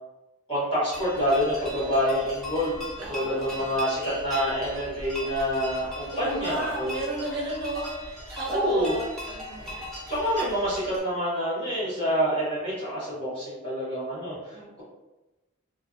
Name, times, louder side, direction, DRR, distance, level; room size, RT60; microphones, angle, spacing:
voice 1, 0.5-2.8 3.1-7.0 8.5-8.9 10.1-14.3, equal, 25° left, -10 dB, 1.2 m, -27 dB
sound 1, 0.9-11.0, left 1 dB, ahead, 0.6 m, -39 dB
voice 2, 3.0-3.6 6.1-9.7 14.5-14.7, right 2 dB, 45° right, -3 dB, 0.5 m, -33 dB
2.5 x 2.3 x 2.5 m, 1.1 s
head